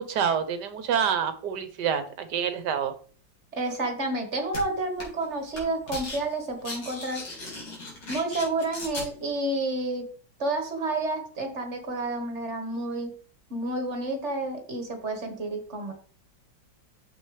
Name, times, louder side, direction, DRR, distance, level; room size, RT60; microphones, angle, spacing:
voice 1, 0.0-2.9, right 7 dB, 65° right, 11 dB, 1.4 m, -27 dB
voice 2, 3.5-7.2 8.1-10.1 10.4-13.1 13.5-15.9, right 2 dB, 40° right, 4 dB, 1.6 m, -30 dB
sound 1, 4.5-4.6 5.0-5.3 5.5-6.2 6.5-9.1, left 2 dB, 90° left, 3.5 m, -37 dB
8.6 x 6.9 x 3.3 m, 0.41 s
omnidirectional pair, 2.1 m